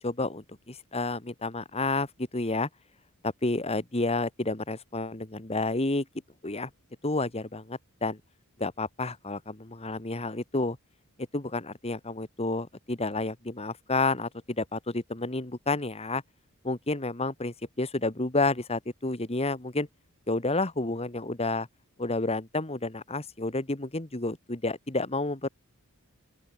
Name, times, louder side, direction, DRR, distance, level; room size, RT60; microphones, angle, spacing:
voice 1, 0.0-2.1 2.3-2.7 3.2-6.0 6.4-6.7 7.0-8.2 8.6-10.8 11.3-16.2 16.6-19.9 20.3-21.7 22.0-25.5, left 2 dB, 30° left, 1.7 m, -30 dB
open air
head